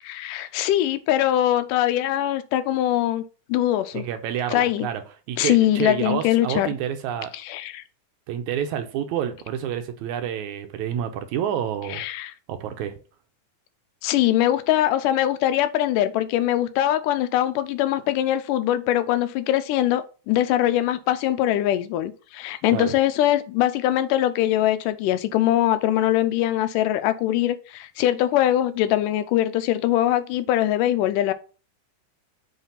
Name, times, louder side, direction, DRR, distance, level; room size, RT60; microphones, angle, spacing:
voice 1, 0.1-3.2 3.5-4.1 4.5-4.9 5.4-6.7 7.4-7.8 11.9-12.3 14.0-31.3, left 13 dB, 90° left, 2.3 m, -22 dB
voice 2, 3.9-5.0 5.3-7.3 8.3-12.0 12.5-12.9 22.7-22.9, right 9 dB, 80° right, 2.0 m, -28 dB
7.3 x 3.3 x 5.6 m
omnidirectional pair, 3.6 m